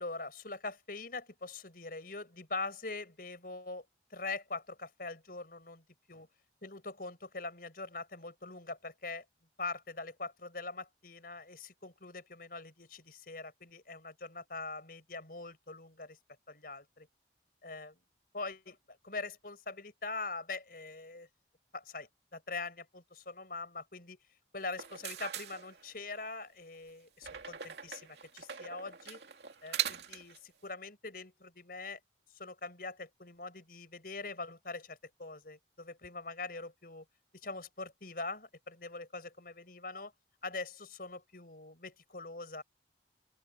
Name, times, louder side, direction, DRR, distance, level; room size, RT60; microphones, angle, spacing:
voice 1, 0.0-6.3 6.6-9.2 9.6-16.2 16.5-17.1 17.6-18.0 18.3-21.3 21.7-24.2 24.5-29.2 29.6-32.0 32.3-37.1 37.3-40.1 40.4-42.6, left 3 dB, 50° left, 5.7 m, -43 dB
sound 1, 24.6-26.2 27.2-30.4, right 9 dB, 65° right, 2.6 m, -40 dB
open air
head